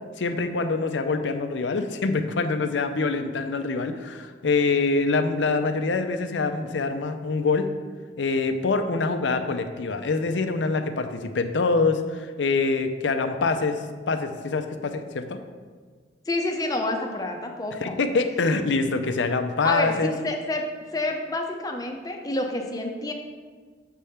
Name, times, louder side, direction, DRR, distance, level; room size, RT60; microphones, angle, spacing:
voice 1, 0.2-7.7 8.2-13.8 14.1-15.4 17.8-20.1, left 3 dB, 85° left, 8 dB, 0.5 m, -25 dB
voice 2, 16.3-18.0 19.6-20.6 20.9-23.1, left 2 dB, 20° left, 2 dB, 0.6 m, -28 dB
7.4 x 3.5 x 5.6 m, 1.5 s
head